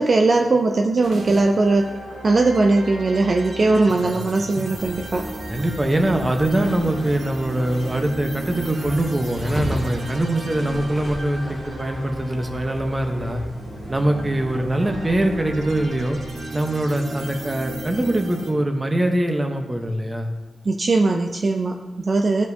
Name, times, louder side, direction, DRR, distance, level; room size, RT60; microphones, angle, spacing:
voice 1, 0.0-1.9 2.2-5.3 20.6-22.5, right 3 dB, 45° right, 3 dB, 0.5 m, -19 dB
sound 1, 1.0-18.5, right 2 dB, 75° right, 0.9 m, -35 dB
sound 2, 4.7-16.4, equal, 10° left, 1.3 m, -36 dB
voice 2, 5.5-13.4 13.9-16.2 16.5-20.3, right 1 dB, 20° right, 4 dB, 0.9 m, -23 dB
13.0 x 5.2 x 2.7 m, 1.3 s
wide cardioid pair, 95°, 0 cm